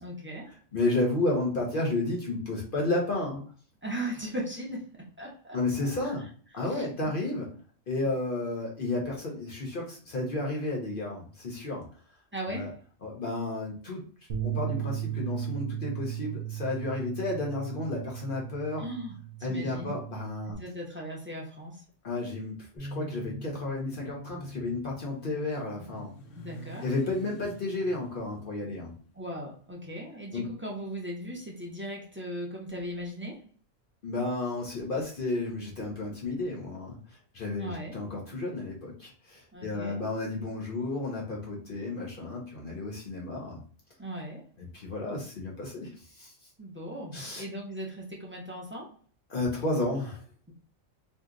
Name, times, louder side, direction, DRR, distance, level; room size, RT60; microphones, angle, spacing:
voice 1, 0.0-0.6 3.8-5.6 5.8-6.1 6.5-7.2 12.3-12.8 18.8-19.1 19.5-20.0 20.5-21.8 26.3-26.9 29.1-33.5 37.6-38.0 39.5-40.0 44.0-44.5 46.6-49.0, right 1 dB, 15° right, -2 dB, 0.4 m, -38 dB
voice 2, 0.7-3.4 5.5-6.3 6.5-7.5 7.9-11.8 12.5-12.7 13.0-14.0 14.4-18.8 19.4-20.6 22.0-26.1 26.8-28.9 30.3-30.4 34.0-37.0 37.3-43.6 44.6-46.3 47.1-47.4 49.3-50.2, left 2 dB, 50° left, -1 dB, 0.8 m, -32 dB
Bass guitar, 14.3-20.5, right 13 dB, 75° right, 0.9 m, -36 dB
Bass guitar 2, 22.8-29.0, right 1 dB, ahead, 0.9 m, -46 dB
Motorcycle, 23.4-31.5, right 2 dB, 80° left, 1.0 m, -51 dB
2.7 x 2.1 x 3.6 m, 0.43 s
omnidirectional pair, 1.3 m